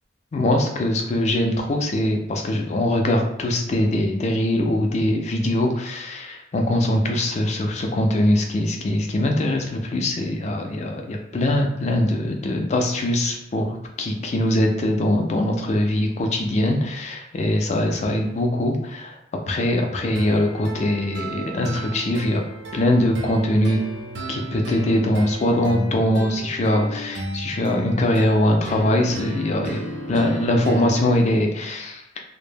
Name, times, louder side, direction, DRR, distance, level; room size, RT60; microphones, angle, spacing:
voice 1, 0.3-19.2 19.5-22.4 22.7-23.8 24.3-29.8 30.1-32.0, left 1 dB, 35° left, 2 dB, 0.3 m, -22 dB
sound 1, 20.2-31.2, right 1 dB, 70° right, 0.4 m, -34 dB
2.1 x 2.0 x 3.2 m, 0.79 s
head